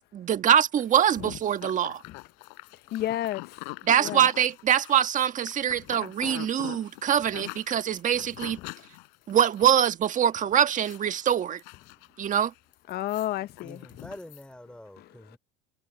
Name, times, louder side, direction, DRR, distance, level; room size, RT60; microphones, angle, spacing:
voice 1, 0.0-2.0 3.8-8.6 9.3-11.6 12.2-12.5, right 9 dB, 40° right, 1.6 m, -24 dB
sound 1, 0.8-9.7 10.0-10.3 10.5-11.1 11.4-12.4 12.7-14.4, left 37 dB, 75° left, 5.3 m, -43 dB
voice 2, 2.9-3.6 4.0-4.2 12.9-14.1 15.0-15.4, left 13 dB, 50° left, 1.0 m, -32 dB
voice 3, 13.6-15.4, left 1 dB, 5° left, 4.5 m, -45 dB
supercardioid pair, 95°, 21 cm